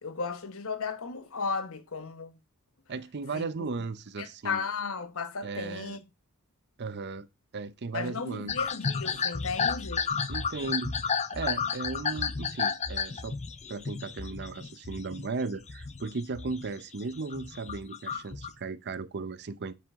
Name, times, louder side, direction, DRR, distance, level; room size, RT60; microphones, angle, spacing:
voice 1, 0.0-2.3 3.3-3.5 4.2-6.0 7.9-10.1, left 5 dB, 65° left, 1.1 m, -35 dB
voice 2, 2.9-4.6 5.4-6.0 6.8-7.3 7.5-8.6 10.3-11.0 11.3-13.4 13.7-19.8, right 4 dB, 50° right, 0.6 m, -36 dB
sound 1, 8.5-15.3 15.6-16.7 17.0-18.5, left 5 dB, 30° left, 0.6 m, -32 dB
9.2 x 6.0 x 3.6 m
head